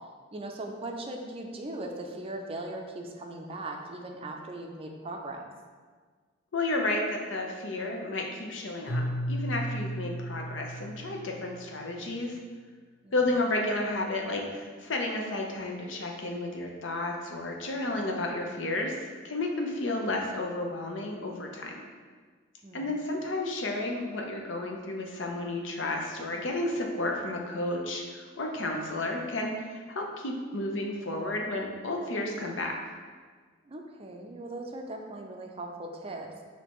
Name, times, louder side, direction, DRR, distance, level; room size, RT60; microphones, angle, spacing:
voice 1, 0.3-5.5 13.0-13.2 22.6-22.9 33.7-36.3, right 2 dB, 30° right, 2 dB, 0.4 m, -39 dB
voice 2, 6.5-12.4 13.1-21.8 22.7-32.8, left 2 dB, 80° left, 1 dB, 0.6 m, -32 dB
Keyboard (musical), 8.9-11.8, equal, 55° left, 0.9 m, -34 dB
6.2 x 2.8 x 3.0 m, 1.5 s
head